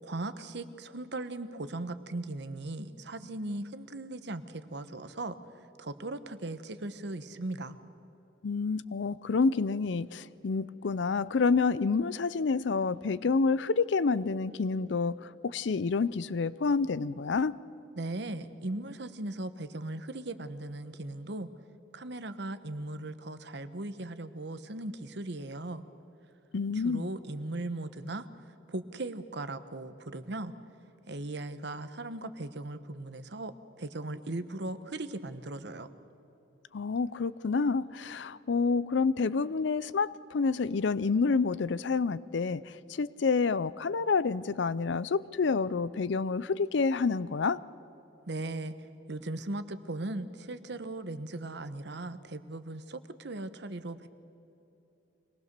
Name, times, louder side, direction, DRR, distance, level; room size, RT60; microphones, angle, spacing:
voice 1, 0.0-5.4 5.8-7.8 18.0-21.5 21.9-25.8 26.7-28.2 28.7-30.5 31.1-35.9 48.3-48.7 49.1-54.1, right 2 dB, 60° right, 11 dB, 1.0 m, -38 dB
voice 2, 8.4-17.5 26.5-27.1 36.7-42.6 42.9-47.6, left 4 dB, 65° left, 18 dB, 0.5 m, -28 dB
25.0 x 19.0 x 6.8 m, 2.9 s
head